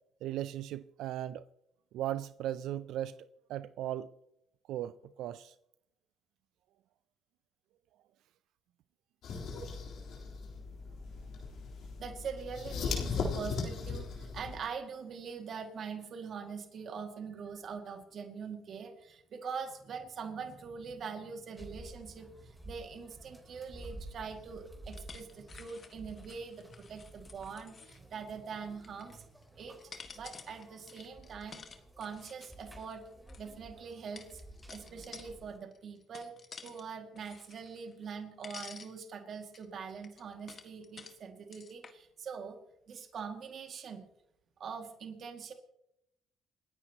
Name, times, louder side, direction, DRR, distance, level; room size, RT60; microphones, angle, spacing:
voice 1, 0.2-1.4 1.9-3.2 3.5-4.1 4.7-4.9 5.2-5.5, right 12 dB, 75° right, 14 dB, 0.5 m, -37 dB
sound 1, 9.2-14.6, left 4 dB, 65° left, 3.7 m, -38 dB
voice 2, 12.0-29.3 29.5-29.8 30.2-31.6 32.0-33.0 33.4-34.4 34.7-36.3 36.6-42.6 42.9-44.0 44.6-45.5, right 6 dB, 55° right, 4 dB, 2.2 m, -43 dB
sound 2, 21.6-35.6, right 1 dB, 5° right, 3.7 m, -53 dB
sound 3, 24.9-28.1 28.7-29.4 29.8-33.4 34.2-35.3 35.7-36.8 37.2-38.2 38.4-38.9 39.5-41.2 41.5-41.9, left 5 dB, 40° left, 1.7 m, -51 dB
28.0 x 10.0 x 3.0 m, 0.81 s
supercardioid pair, 80°, 0 cm